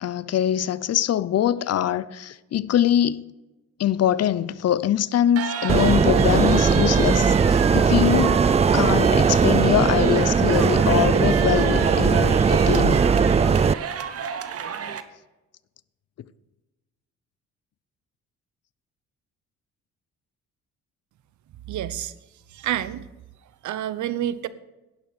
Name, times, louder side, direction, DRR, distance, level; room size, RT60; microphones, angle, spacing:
voice 1, 0.0-3.2 3.8-8.4 8.7-13.0, left 11 dB, 55° left, 0.7 m, -23 dB
sound 1, 5.4-15.0, right 7 dB, 50° right, 1.3 m, -31 dB
sound 2, 5.7-13.7, right 5 dB, 20° right, 0.4 m, -19 dB
voice 2, 21.7-22.1 22.5-23.0 23.6-24.5, right 11 dB, 70° right, 0.9 m, -28 dB
11.5 x 11.0 x 6.6 m
cardioid pair, 90°, 30 cm